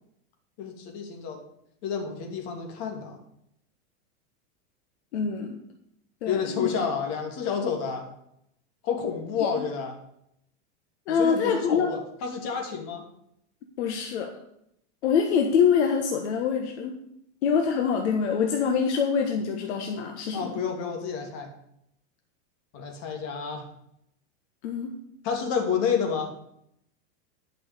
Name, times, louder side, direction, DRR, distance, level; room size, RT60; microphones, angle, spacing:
voice 1, 0.6-1.4 1.8-3.2 6.3-8.1 8.8-9.9 11.1-13.0 20.3-21.5 22.7-23.7 25.2-26.3, left 6 dB, 45° left, 3 dB, 2.8 m, -29 dB
voice 2, 5.1-5.6 6.2-6.7 11.1-11.9 13.8-14.3 15.0-17.0 17.4-20.6 24.6-24.9, left 6 dB, 70° left, 3 dB, 1.6 m, -25 dB
11.5 x 6.1 x 6.8 m, 0.76 s
supercardioid pair, 150°, 35 cm